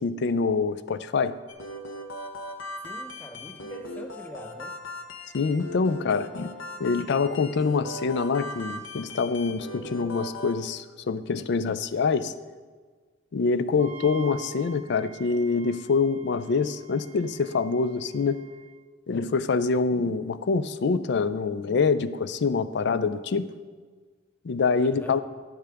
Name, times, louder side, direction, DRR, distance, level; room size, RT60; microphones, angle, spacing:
voice 1, 0.0-1.4 5.3-6.5 6.8-12.3 13.3-18.4 19.1-23.5 24.4-25.2, left 4 dB, 60° left, 13 dB, 0.4 m, -25 dB
sound 1, 1.5-10.5, left 1 dB, 85° left, 1.0 m, -39 dB
voice 2, 2.8-4.8 24.8-25.2, left 1 dB, 10° left, 5 dB, 0.7 m, -43 dB
Wind instrument woodwind instrument, 13.8-18.7, right 7 dB, 40° right, 0.7 m, -47 dB
13.5 x 6.7 x 3.5 m, 1.5 s
head